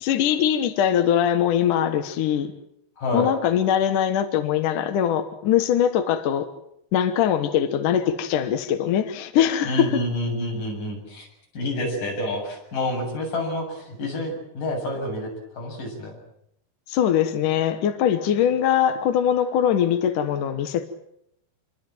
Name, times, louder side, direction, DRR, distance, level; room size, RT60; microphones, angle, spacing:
voice 1, 0.0-2.5 3.1-6.5 6.9-10.0 16.9-20.9, left 9 dB, 65° left, 8 dB, 2.2 m, -22 dB
voice 2, 3.0-3.3 9.6-11.3 11.5-16.2, left 1 dB, 45° left, 1 dB, 9.2 m, -28 dB
27.0 x 23.0 x 7.7 m, 0.76 s
omnidirectional pair, 5.2 m